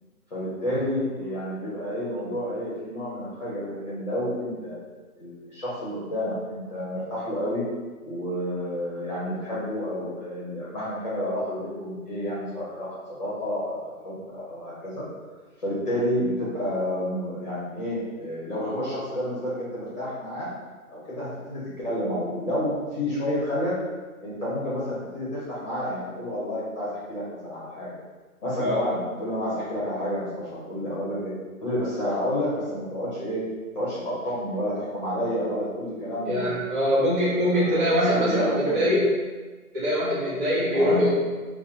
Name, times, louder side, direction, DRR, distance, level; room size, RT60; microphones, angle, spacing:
voice 1, 0.3-4.7 5.2-7.6 8.0-12.9 13.2-15.0 15.6-20.5 20.9-23.8 24.2-28.0 28.4-31.3 31.6-33.4 33.7-36.6 37.0-38.9 40.7-41.0, equal, 30° left, -8 dB, 0.8 m, -30 dB
voice 2, 36.2-39.1 39.7-41.1, equal, 35° right, -9 dB, 1.3 m, -23 dB
2.8 x 2.1 x 3.8 m, 1.3 s
hypercardioid pair, 155°, 44 cm